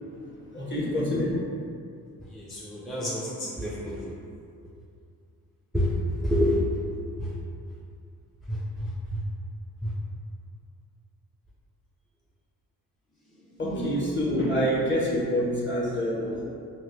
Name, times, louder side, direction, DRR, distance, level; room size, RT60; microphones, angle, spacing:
voice 1, 0.3-1.4 13.6-16.4, equal, 25° left, -5 dB, 1.2 m, -27 dB
voice 2, 2.3-4.2 5.7-6.6 7.2-7.4 8.5-9.2 9.8-9.9 13.3-13.4, equal, ahead, -7 dB, 0.6 m, -28 dB
4.2 x 2.1 x 2.7 m, 2.4 s
hypercardioid pair, 45°, 41 cm